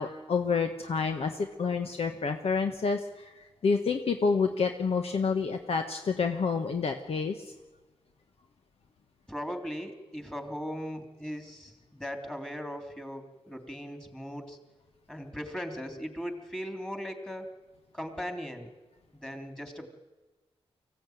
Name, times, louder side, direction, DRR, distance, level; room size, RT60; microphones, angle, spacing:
voice 1, 0.0-7.5, left 5 dB, 70° left, 5 dB, 1.4 m, -29 dB
voice 2, 9.3-14.6 15.1-17.5 17.9-18.7 19.1-19.9, equal, 5° left, 5 dB, 3.2 m, -38 dB
24.0 x 15.5 x 9.4 m, 1.2 s
wide cardioid pair, 100°, 11 cm